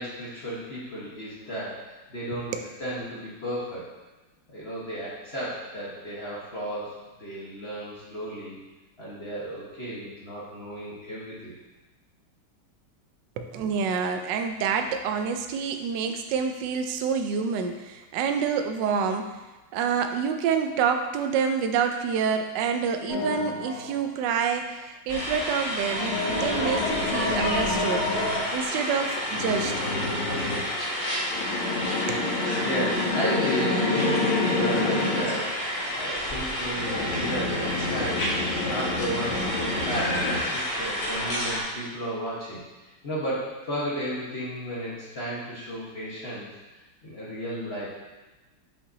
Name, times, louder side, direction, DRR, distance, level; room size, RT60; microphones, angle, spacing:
voice 1, 0.0-2.5 2.8-3.9 4.5-8.6 9.0-11.5 32.6-46.5 46.7-47.9, equal, 35° left, -7 dB, 1.2 m, -34 dB
voice 2, 13.4-19.4 19.7-28.0 28.5-29.7 32.1-32.2, right 6 dB, 75° right, 6 dB, 1.0 m, -27 dB
sound 1, 23.1-24.0 25.8-28.4 29.3-30.6 31.3-35.4 36.7-40.4, left 3 dB, 80° left, 2.3 m, -28 dB
sound 2, 25.1-41.6, equal, 55° left, 1.4 m, -30 dB
7.0 x 5.5 x 2.7 m, 1.1 s
omnidirectional pair, 2.4 m